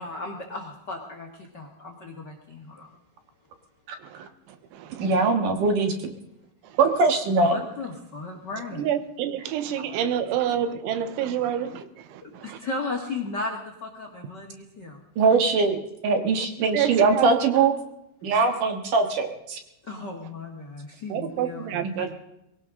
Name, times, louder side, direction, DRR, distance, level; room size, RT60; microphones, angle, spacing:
voice 1, 0.0-2.9 7.4-8.9 12.2-15.0 19.8-21.8, left 3 dB, 70° left, 2 dB, 1.0 m, -35 dB
voice 2, 4.0-5.3 6.6-6.8 8.7-12.6 16.7-17.3 21.1-21.9, right 10 dB, 90° right, 11 dB, 3.4 m, -29 dB
voice 3, 5.0-6.1 6.8-7.6 15.2-15.8 16.0-17.7 18.2-19.6 21.8-22.2, right 4 dB, 60° right, 6 dB, 2.5 m, -21 dB
22.0 x 17.5 x 3.8 m, 0.84 s
omnidirectional pair, 5.4 m